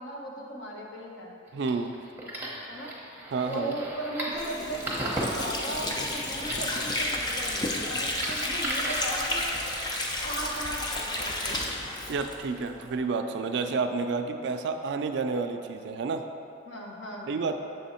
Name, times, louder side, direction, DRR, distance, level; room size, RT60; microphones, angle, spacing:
voice 1, 0.0-1.3 2.7-2.9 3.4-9.7 10.2-11.7 16.7-17.3, right 1 dB, 65° left, -2 dB, 0.9 m, -37 dB
sound 1, 1.5-10.0, right 1 dB, 10° right, 0.8 m, -37 dB
voice 2, 1.5-1.9 3.3-3.8 12.1-16.2 17.3-17.5, right 4 dB, 60° right, 7 dB, 0.3 m, -30 dB
Water / Sink (filling or washing), 4.3-12.9, left 1 dB, 20° left, 0.4 m, -31 dB
6.8 x 3.4 x 4.2 m, 2.6 s
head